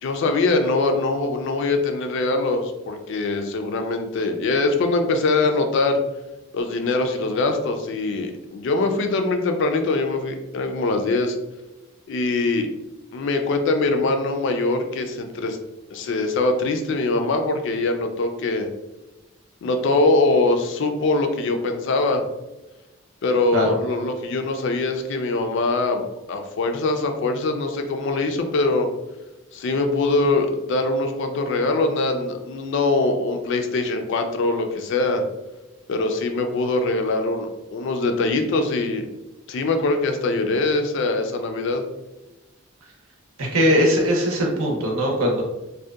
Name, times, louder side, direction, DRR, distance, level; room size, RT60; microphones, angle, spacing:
voice 1, 0.0-6.0 6.5-11.4 12.1-12.7 13.1-15.6 15.9-18.7 19.6-22.2 23.2-26.0 26.3-28.9 29.5-35.2 35.9-39.1 39.5-41.8, left 3 dB, 55° left, 5 dB, 0.3 m, -22 dB
voice 2, 43.4-45.4, equal, 85° right, 0 dB, 0.7 m, -20 dB
2.7 x 2.1 x 2.3 m, 1.0 s
head